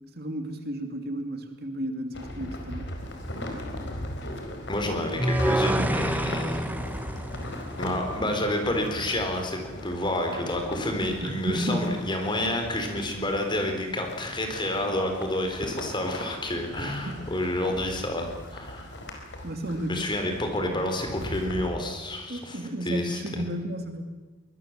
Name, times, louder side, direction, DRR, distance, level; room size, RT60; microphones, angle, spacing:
voice 1, 0.1-2.9 11.2-12.0 16.7-17.4 19.4-20.1 22.3-24.0, equal, 50° right, 6 dB, 2.6 m, -33 dB
sound 1, 2.1-21.6, left 1 dB, 60° left, 4.5 m, -39 dB
voice 2, 4.7-6.7 7.8-18.9 19.9-22.6 22.8-23.4, left 1 dB, 25° left, 4 dB, 4.2 m, -29 dB
sound 2, 5.2-8.4, right 1 dB, 10° right, 0.8 m, -28 dB
24.0 x 20.5 x 7.5 m, 1.2 s
head